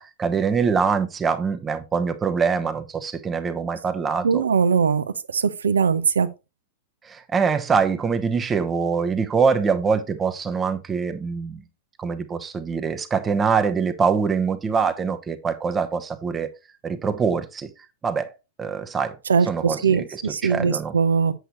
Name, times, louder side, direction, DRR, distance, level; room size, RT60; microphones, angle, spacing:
voice 1, 0.0-4.4 7.0-11.6 12.0-16.5 16.8-17.7 18.0-18.3 18.6-19.2 19.4-20.9, right 5 dB, 20° right, 0.9 m, -24 dB
voice 2, 4.2-5.0 5.3-6.3 19.3-21.3, right 6 dB, 80° right, 0.7 m, -20 dB
8.0 x 7.9 x 3.0 m
figure-of-eight pair, 100°, 0 cm